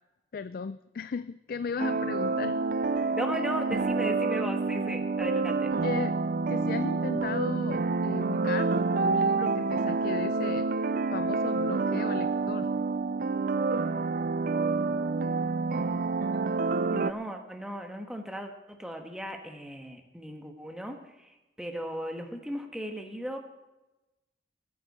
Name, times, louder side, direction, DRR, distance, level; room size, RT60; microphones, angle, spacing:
voice 1, 0.3-2.6 5.8-6.2 6.5-10.7 11.1-12.7, left 5 dB, 55° left, 14 dB, 0.4 m, -36 dB
sound 1, 1.8-17.1, right 4 dB, 50° right, 0.4 m, -28 dB
voice 2, 3.1-5.7 16.9-23.4, equal, 5° right, 3 dB, 1.4 m, -37 dB
21.5 x 9.4 x 4.2 m, 1.0 s
head